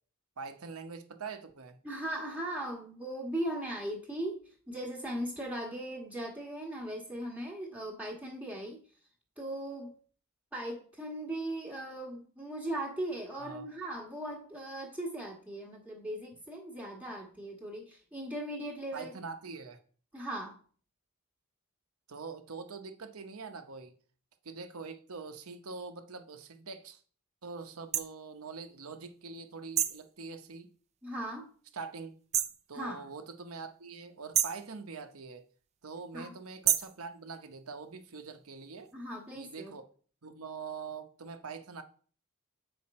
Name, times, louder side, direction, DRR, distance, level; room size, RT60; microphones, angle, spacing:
voice 1, 0.4-1.8 13.4-13.7 18.9-19.8 22.1-23.9 24.4-27.0 27.4-30.7 31.7-32.1 32.7-35.4 35.8-38.9 39.3-39.8 40.2-41.8, right 4 dB, 70° right, 0.9 m, -44 dB
voice 2, 1.8-8.8 9.4-10.0 10.5-19.1 20.1-20.6 31.0-31.5 32.7-33.0 36.1-36.3 38.9-39.8, right 1 dB, 5° right, 1.4 m, -38 dB
sound 1, 27.9-28.1 29.8-30.0 32.3-32.6 34.3-34.6 36.6-37.0, right 10 dB, 30° right, 0.4 m, -28 dB
7.7 x 5.1 x 4.2 m
head